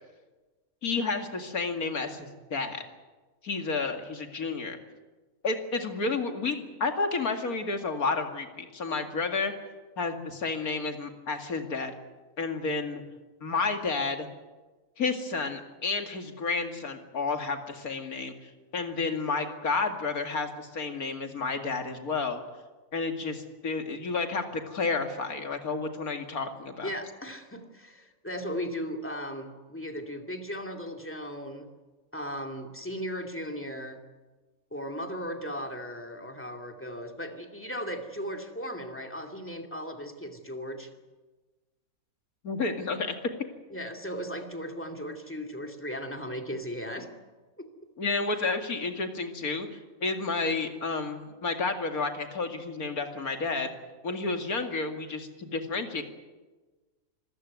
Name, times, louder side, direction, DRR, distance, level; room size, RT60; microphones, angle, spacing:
voice 1, 0.8-2.8 3.4-4.8 5.4-9.5 10.0-11.9 12.4-13.0 13.4-14.3 15.0-22.4 22.9-26.9 42.4-43.2 48.0-49.7 50.0-53.7 54.0-56.0, left 4 dB, 80° left, 5 dB, 2.7 m, -31 dB
voice 2, 26.8-31.7 32.1-34.0 34.7-40.9 43.7-47.1 47.6-47.7, equal, 10° left, 4 dB, 2.4 m, -37 dB
26.0 x 15.5 x 9.5 m, 1.2 s
omnidirectional pair, 1.5 m